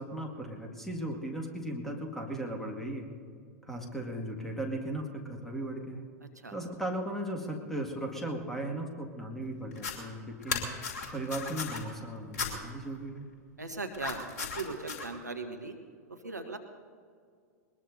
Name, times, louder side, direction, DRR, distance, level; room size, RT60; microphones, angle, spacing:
voice 1, 0.0-3.1 3.6-6.1 6.5-10.6 11.1-13.3, right 1 dB, 5° left, 1 dB, 2.0 m, -37 dB
sound 1, 9.7-9.9 10.4-11.8 12.3-12.5 13.9-15.1, left 5 dB, 45° left, 3.2 m, -35 dB
voice 2, 13.6-15.8 16.1-16.6, right 3 dB, 80° right, 5 dB, 1.2 m, -39 dB
21.5 x 20.5 x 2.7 m, 2.2 s
figure-of-eight pair, 95°, 9 cm